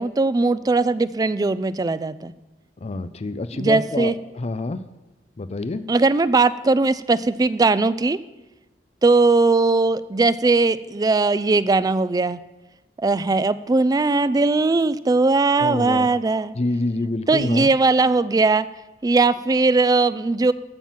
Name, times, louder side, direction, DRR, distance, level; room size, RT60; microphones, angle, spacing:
voice 1, 0.0-2.3 3.5-4.2 5.9-8.2 9.0-12.4 13.0-16.5 17.3-18.7 19.0-20.5, right 3 dB, 20° right, 15 dB, 0.3 m, -19 dB
voice 2, 2.8-4.8 5.4-5.8 15.6-16.1 16.6-17.7, left 2 dB, 35° left, 13 dB, 0.5 m, -27 dB
14.5 x 5.9 x 7.3 m, 1.1 s
head